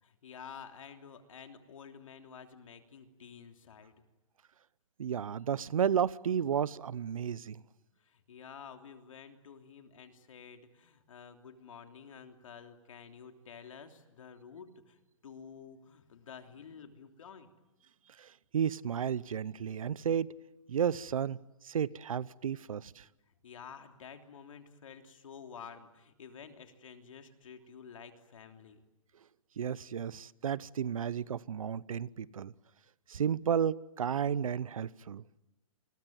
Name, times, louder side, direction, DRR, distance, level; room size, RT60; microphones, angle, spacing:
voice 1, 0.0-4.0 8.0-17.5 23.4-28.8, left 7 dB, 75° left, 3.2 m, -51 dB
voice 2, 5.0-7.6 18.2-20.3 20.7-21.4 21.6-23.0 29.6-32.5 33.1-35.2, right 8 dB, 85° right, 0.9 m, -32 dB
28.5 x 21.5 x 9.4 m
hypercardioid pair, 160°, 17 cm